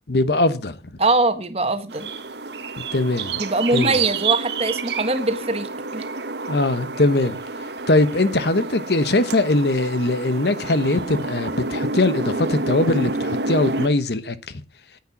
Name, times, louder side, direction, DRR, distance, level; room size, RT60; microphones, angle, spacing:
voice 1, 0.1-0.8 2.9-3.3 3.7-4.0 6.5-7.4 7.9-14.4, left 2 dB, 60° left, 1.0 m, -21 dB
voice 2, 1.0-2.1 3.4-6.0, right 2 dB, 35° right, 1.5 m, -22 dB
sound 1, 1.9-13.9, right 4 dB, 70° right, 1.2 m, -28 dB
10.0 x 8.5 x 5.9 m
head